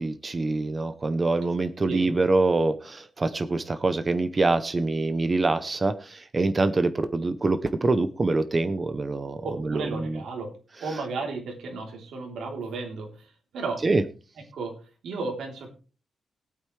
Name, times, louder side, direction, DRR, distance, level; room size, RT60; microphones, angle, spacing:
voice 1, 0.0-10.2 13.8-14.0, right 3 dB, 25° right, 12 dB, 0.7 m, -25 dB
voice 2, 9.4-10.5 10.8-13.8 14.5-14.8 15.0-15.7, right 3 dB, 85° right, 1 dB, 3.4 m, -34 dB
19.0 x 8.9 x 3.3 m, 0.36 s
wide cardioid pair, 165°, 0 cm